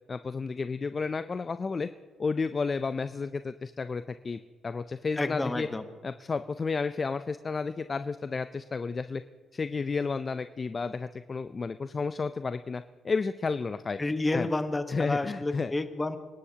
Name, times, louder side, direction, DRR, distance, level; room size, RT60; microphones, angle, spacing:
voice 1, 0.1-1.9 2.2-5.7 6.0-9.2 9.5-14.0 14.3-14.5 14.9-15.7, left 4 dB, 35° left, 12 dB, 0.4 m, -32 dB
voice 2, 5.2-5.8 14.0-16.2, left 2 dB, 20° left, 8 dB, 1.1 m, -30 dB
27.5 x 11.5 x 2.9 m, 1.4 s
cardioid pair, 90°, 0 cm